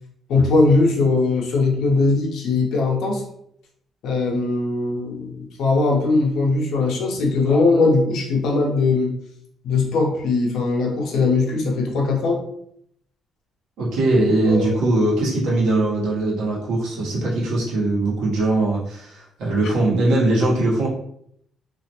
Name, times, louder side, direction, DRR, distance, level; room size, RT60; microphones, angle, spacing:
voice 1, 0.3-3.2 4.0-9.1 9.6-12.4 14.5-14.7 19.6-19.7, left 3 dB, 60° left, 0 dB, 0.6 m, -20 dB
voice 2, 13.8-20.9, right 2 dB, 75° right, -4 dB, 0.9 m, -21 dB
2.4 x 2.1 x 2.8 m, 0.69 s
cardioid pair, 180°, 0 cm